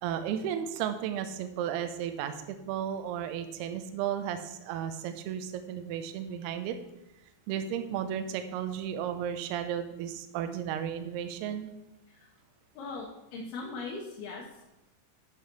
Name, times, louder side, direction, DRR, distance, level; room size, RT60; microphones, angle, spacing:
voice 1, 0.0-6.8 7.5-11.7, right 9 dB, 80° right, 8 dB, 2.4 m, -34 dB
voice 2, 12.7-14.9, left 3 dB, 70° left, -2 dB, 2.8 m, -40 dB
9.3 x 7.2 x 4.6 m, 0.91 s
omnidirectional pair, 5.1 m